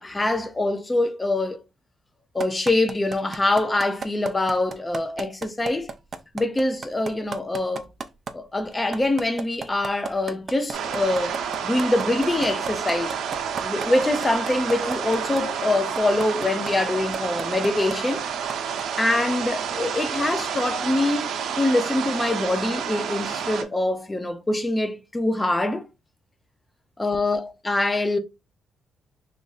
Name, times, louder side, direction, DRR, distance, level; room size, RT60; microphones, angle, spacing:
voice 1, 0.0-1.6 2.3-5.9 6.3-7.9 8.3-11.4 11.6-13.2 13.6-18.2 19.0-25.9 27.0-28.2, left 2 dB, 15° left, 0.5 m, -24 dB
sound 1, 2.4-8.3 8.7-15.4 16.0-16.7 17.1-18.0 18.5-18.8, right 5 dB, 40° right, 0.4 m, -32 dB
sound 2, 10.7-23.6, right 7 dB, 80° right, 0.6 m, -29 dB
3.0 x 2.5 x 3.9 m
cardioid pair, 135°, 0 cm